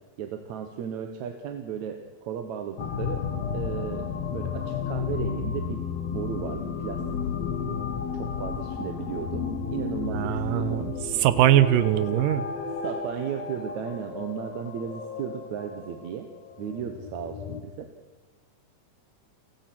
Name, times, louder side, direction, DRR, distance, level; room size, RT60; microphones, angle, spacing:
voice 1, 0.2-3.3 3.5-5.8 6.1-7.0 8.1-9.4 9.7-10.8 12.7-16.3 16.6-17.9, right 8 dB, 65° right, 5 dB, 2.4 m, -35 dB
sound 1, 2.8-17.6, left 6 dB, 60° left, 2.2 m, -33 dB
voice 2, 10.1-10.9 11.2-12.4, right 13 dB, 90° right, 14 dB, 2.5 m, -21 dB
29.0 x 16.0 x 6.2 m, 1.3 s
omnidirectional pair, 3.8 m